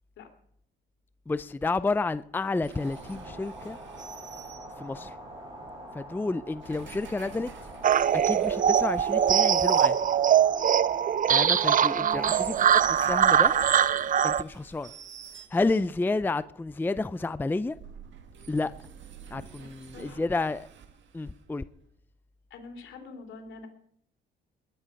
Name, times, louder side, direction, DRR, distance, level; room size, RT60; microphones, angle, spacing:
voice 1, 1.3-3.8 4.8-5.1 5.9-7.5 8.1-10.0 11.3-13.5 14.2-14.9 15.5-17.8 18.5-18.7 19.3-20.7 21.1-21.7, left 3 dB, 10° left, 0.5 m, -30 dB
sound 1, 2.6-5.2 6.4-10.5 12.0-16.0 17.5-21.7, right 7 dB, 70° right, 1.8 m, -48 dB
sound 2, 2.7-13.9, right 1 dB, 20° right, 7.3 m, -45 dB
sound 3, 7.8-14.4, right 8 dB, 40° right, 0.5 m, -22 dB
voice 2, 11.9-12.6 19.6-20.3 22.5-23.7, left 4 dB, 75° left, 3.2 m, -45 dB
20.5 x 10.0 x 5.3 m
cardioid pair, 90°, 20 cm